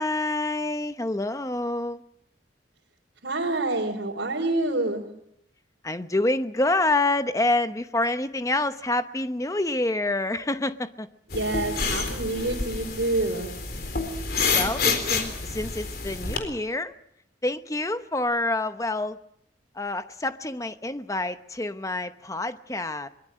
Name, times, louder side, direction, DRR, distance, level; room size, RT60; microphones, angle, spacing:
voice 1, 0.0-2.0 5.8-11.1 14.5-16.9 17.4-19.2 19.7-23.1, left 2 dB, 20° left, 10 dB, 0.9 m, -27 dB
voice 2, 3.2-5.0 11.3-13.5, right 2 dB, 75° right, -3 dB, 4.1 m, -27 dB
sound 1, 11.3-16.4, left 4 dB, 55° left, 3.9 m, -28 dB
23.5 x 22.0 x 7.6 m, 0.75 s
head